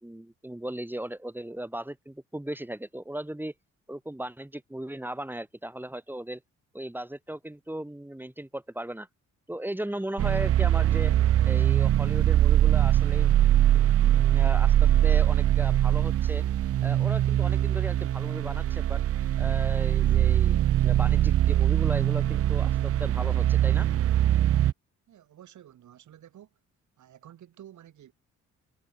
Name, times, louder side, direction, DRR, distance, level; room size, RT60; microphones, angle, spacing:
voice 1, 0.0-3.5 3.9-6.4 6.7-9.1 9.5-11.1 11.4-13.3 14.1-16.4 16.8-19.0 19.4-23.9, right 1 dB, 5° right, 4.4 m, -37 dB
sound 1, 10.2-24.7, right 12 dB, 50° right, 0.6 m, -22 dB
voice 2, 25.1-26.6 27.0-28.1, right 11 dB, 70° right, 7.4 m, -51 dB
cardioid pair, 90°, 30 cm